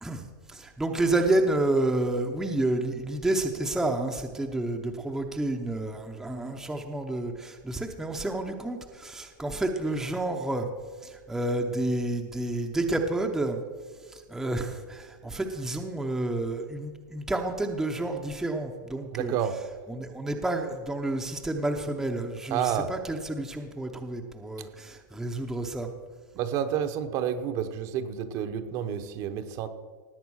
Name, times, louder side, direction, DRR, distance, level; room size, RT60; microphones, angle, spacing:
voice 1, 0.0-10.7 11.0-13.6 14.1-19.3 19.9-25.9, right 2 dB, 5° right, 3 dB, 0.8 m, -30 dB
voice 2, 19.1-19.6 22.5-22.9 26.4-29.7, right 9 dB, 35° right, 9 dB, 0.9 m, -29 dB
18.0 x 8.0 x 6.3 m, 1.5 s
supercardioid pair, 160°, 11 cm